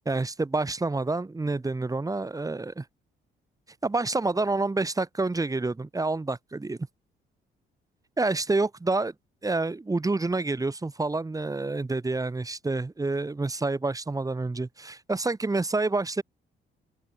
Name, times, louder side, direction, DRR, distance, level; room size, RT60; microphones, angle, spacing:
voice 1, 0.1-2.8 3.8-6.8 8.2-9.1 9.4-16.2, right 3 dB, 15° right, 1.5 m, -28 dB
open air
cardioid pair, 90°, 20 cm